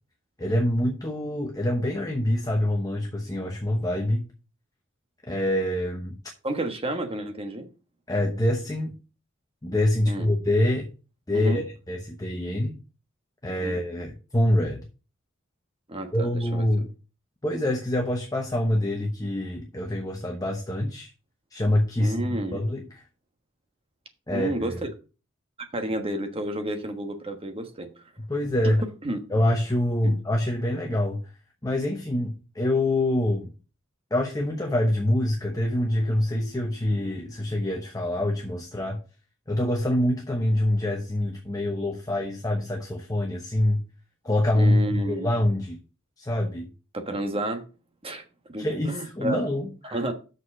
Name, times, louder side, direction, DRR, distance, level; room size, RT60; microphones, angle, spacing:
voice 1, 0.4-4.3 5.3-6.2 8.1-8.9 9.6-10.9 11.3-12.8 13.4-14.9 16.1-16.9 17.4-21.1 21.5-23.0 24.3-24.8 28.3-28.8 29.3-31.2 31.6-33.5 34.1-39.0 39.5-43.8 44.2-45.8 46.2-46.7 48.6-50.0, left 1 dB, 20° left, 0.9 m, -25 dB
voice 2, 6.4-7.7 10.0-10.2 11.3-11.6 13.6-13.8 15.9-16.7 22.0-22.6 24.3-24.9 25.7-27.9 29.0-29.2 30.0-30.2 44.5-45.3 46.9-47.6 48.0-48.2 48.5-49.4 49.8-50.1, right 1 dB, 30° right, 1.3 m, -31 dB
6.5 x 5.2 x 5.9 m
head